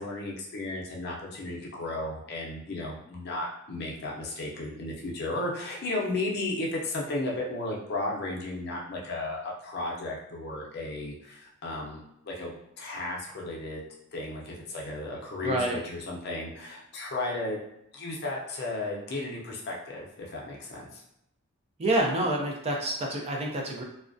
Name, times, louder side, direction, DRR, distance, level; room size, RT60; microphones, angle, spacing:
voice 1, 0.0-13.8 14.1-17.6 17.9-21.0, left 2 dB, 50° left, -2 dB, 0.5 m, -34 dB
voice 2, 15.4-15.8 21.8-23.8, right 1 dB, 30° right, 0 dB, 0.4 m, -27 dB
2.3 x 2.1 x 2.5 m, 0.80 s
head